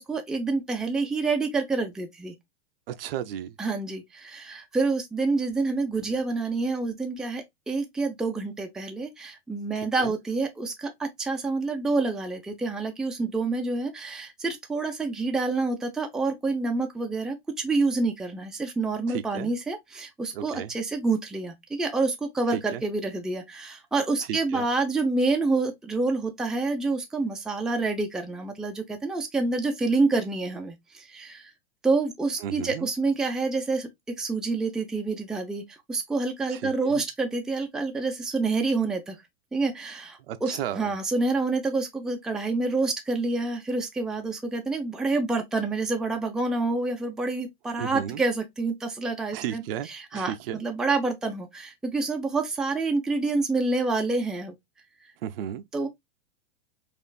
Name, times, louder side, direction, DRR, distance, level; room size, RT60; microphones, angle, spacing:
voice 1, 0.0-2.3 3.6-31.5 31.8-39.2 39.5-49.6 49.9-54.5 55.7-55.9, right 3 dB, ahead, 0.5 m, -28 dB
voice 2, 2.9-3.6 9.7-10.2 19.1-19.5 20.3-20.7 22.5-22.8 24.3-24.6 32.4-32.9 36.5-37.0 40.3-40.8 47.8-48.2 49.3-50.6 55.2-55.6, right 10 dB, 60° right, 0.5 m, -34 dB
4.3 x 2.5 x 2.3 m
hypercardioid pair, 110°, 32 cm